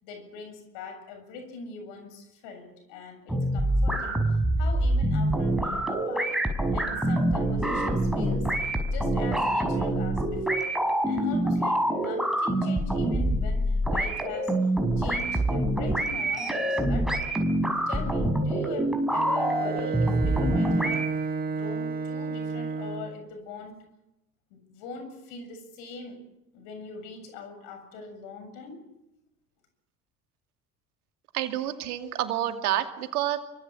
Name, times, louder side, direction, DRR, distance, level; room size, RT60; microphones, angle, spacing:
voice 1, 0.0-4.3 4.6-6.4 6.7-8.6 8.9-10.8 11.1-14.5 15.0-17.1 17.9-21.1 21.5-23.8 24.5-26.2 26.5-28.8, left 4 dB, 65° left, 7 dB, 7.4 m, -41 dB
sound 1, 3.3-21.1, right 1 dB, ahead, 5.9 m, -26 dB
Bowed string instrument, 19.1-23.3, right 4 dB, 20° right, 1.2 m, -32 dB
voice 2, 31.3-33.4, right 12 dB, 70° right, 7 dB, 2.5 m, -28 dB
28.5 x 24.5 x 7.4 m, 0.90 s
figure-of-eight pair, 55°, 46 cm